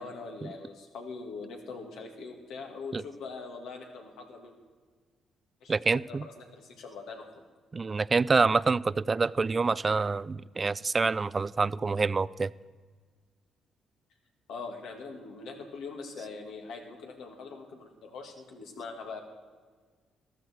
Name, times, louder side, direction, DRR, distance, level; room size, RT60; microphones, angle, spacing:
voice 1, 0.0-4.5 5.6-7.4 14.5-19.2, left 4 dB, 80° left, 2 dB, 2.4 m, -42 dB
voice 2, 5.7-6.3 7.7-12.5, right 4 dB, 30° right, 20 dB, 0.3 m, -26 dB
14.0 x 13.5 x 4.6 m, 1.5 s
cardioid pair, 90°, 0 cm